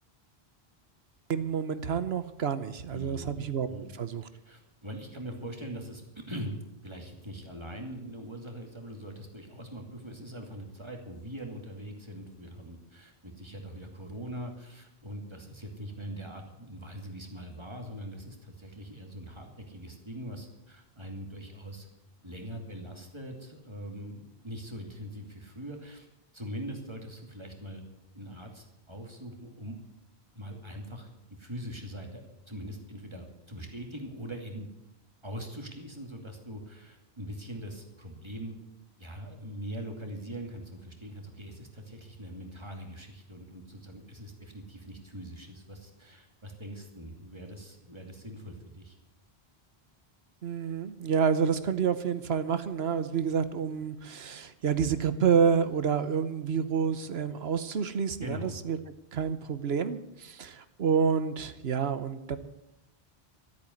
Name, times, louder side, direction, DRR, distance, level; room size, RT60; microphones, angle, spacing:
voice 1, 1.3-3.7 4.0-4.2 50.4-58.8 59.1-62.4, right 7 dB, 75° right, 12 dB, 1.2 m, -28 dB
voice 2, 2.9-4.0 4.4-21.9 22.2-26.1 26.3-27.8 28.1-29.8 30.3-34.7 35.2-38.6 39.0-49.0 58.2-58.5, equal, 25° right, 2 dB, 2.6 m, -42 dB
14.0 x 8.6 x 9.7 m, 0.86 s
omnidirectional pair, 1.1 m